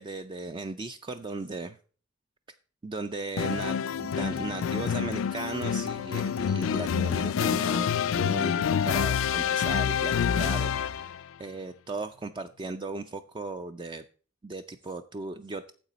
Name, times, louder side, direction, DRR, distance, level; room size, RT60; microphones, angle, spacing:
voice 1, 0.0-1.8 2.8-11.1 11.4-14.0 14.4-15.7, right 3 dB, 25° right, 8 dB, 0.3 m, -37 dB
sound 1, 3.4-11.2, left 7 dB, 65° left, 0.4 m, -27 dB
8.9 x 7.4 x 4.0 m, 0.40 s
head